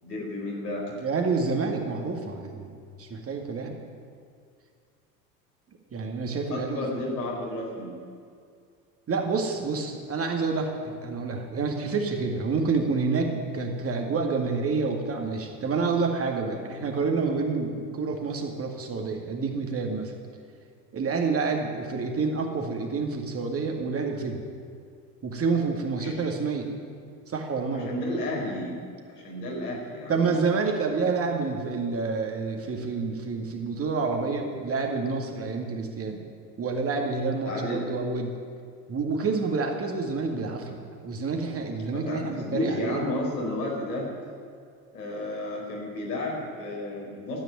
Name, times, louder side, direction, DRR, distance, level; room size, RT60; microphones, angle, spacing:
voice 1, 0.0-0.9 6.5-7.9 26.0-26.2 27.7-28.7 29.1-30.3 37.4-37.8 41.9-44.1 44.9-47.4, left 1 dB, 75° left, -2 dB, 4.6 m, -32 dB
voice 2, 1.0-3.8 5.9-6.9 9.1-20.2 20.9-24.4 25.2-26.7 27.3-27.9 30.1-36.2 36.6-38.3 38.9-43.0, right 4 dB, 30° right, 2 dB, 2.2 m, -28 dB
14.0 x 9.1 x 9.4 m, 2.2 s
figure-of-eight pair, 70°, 48 cm